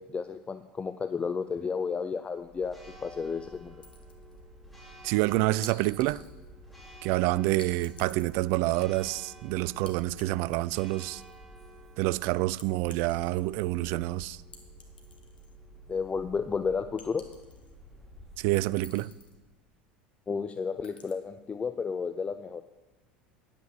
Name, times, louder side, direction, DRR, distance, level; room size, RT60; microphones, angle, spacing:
voice 1, 0.0-3.7 15.9-17.2 20.3-22.6, left 5 dB, 25° left, 0.5 m, -32 dB
Church bell, 2.4-19.6, right 1 dB, ahead, 2.9 m, -51 dB
sound 1, 3.8-4.4 5.6-6.3 7.6-8.4 9.9-10.3 10.5-11.4 12.6-13.7 14.5-15.5 15.9-16.0 17.0-17.7 18.5-19.4 20.8-21.1, left 5 dB, 85° left, 1.4 m, -51 dB
voice 2, 5.0-6.2 7.0-11.2 12.0-14.4 18.4-19.1, right 19 dB, 55° right, 0.4 m, -27 dB
10.0 x 8.5 x 6.6 m
hypercardioid pair, 75°, 5 cm